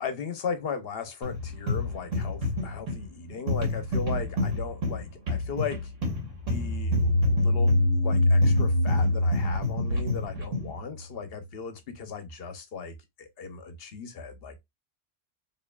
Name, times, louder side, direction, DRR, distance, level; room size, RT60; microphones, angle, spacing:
voice 1, 0.0-5.9 6.5-7.7 8.0-14.6, left 6 dB, 55° left, 0.9 m, -37 dB
sound 1, 1.2-10.8, left 2 dB, 75° right, 1.6 m, -30 dB
sound 2, 6.5-11.0, left 1 dB, 85° left, 0.9 m, -24 dB
4.6 x 2.9 x 2.3 m
omnidirectional pair, 1.3 m